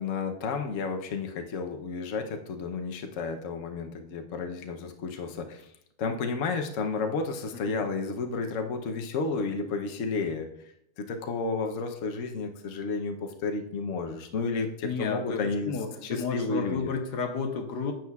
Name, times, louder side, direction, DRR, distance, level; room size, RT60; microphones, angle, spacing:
voice 1, 0.0-5.7 6.0-10.5 11.0-16.9, left 4 dB, 60° left, 4 dB, 1.1 m, -32 dB
voice 2, 14.8-17.9, left 5 dB, 90° left, 4 dB, 1.6 m, -32 dB
10.0 x 7.8 x 2.4 m, 0.76 s
omnidirectional pair, 1.7 m